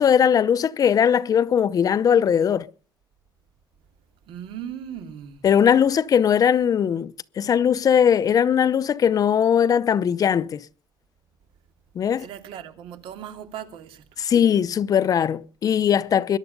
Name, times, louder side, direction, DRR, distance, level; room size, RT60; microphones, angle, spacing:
voice 1, 0.0-2.7 5.4-10.6 12.0-12.3 14.2-16.4, left 8 dB, 45° left, 0.7 m, -19 dB
voice 2, 4.3-5.4 12.2-14.0, right 9 dB, 85° right, 2.7 m, -37 dB
21.5 x 11.0 x 5.3 m
cardioid pair, 125°, 9 cm